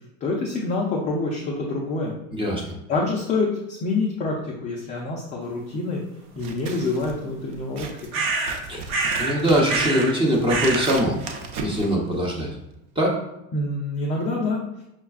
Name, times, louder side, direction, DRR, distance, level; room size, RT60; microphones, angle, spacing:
voice 1, 0.2-2.1 2.9-6.0 6.4-7.9 8.2-8.3 13.5-14.6, left 3 dB, 20° left, -3 dB, 0.4 m, -26 dB
voice 2, 2.3-2.6 8.7-8.9 9.2-11.2 11.6-12.6 13.0-13.2, equal, 10° right, -2 dB, 0.7 m, -22 dB
Scissors, 6.3-12.6, right 4 dB, 45° right, 0.6 m, -37 dB
sound 1, 8.1-8.6 8.9-9.4 9.7-10.1 10.5-10.9, right 3 dB, 85° right, 0.8 m, -25 dB
5.6 x 2.1 x 2.4 m, 0.86 s
supercardioid pair, 120°, 42 cm